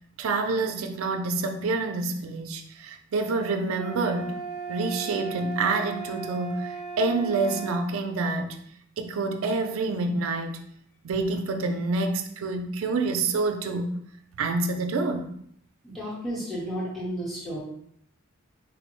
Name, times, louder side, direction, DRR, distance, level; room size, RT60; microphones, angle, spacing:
voice 1, 0.2-4.3 4.7-8.6 9.0-10.6 11.0-13.9 14.4-15.3, right 3 dB, 75° right, 5 dB, 0.4 m, -27 dB
sound 1, 3.7-7.9, right 5 dB, 35° left, 0.7 m, -36 dB
voice 2, 15.8-17.6, equal, ahead, -7 dB, 0.9 m, -32 dB
3.9 x 2.0 x 3.0 m, 0.68 s
head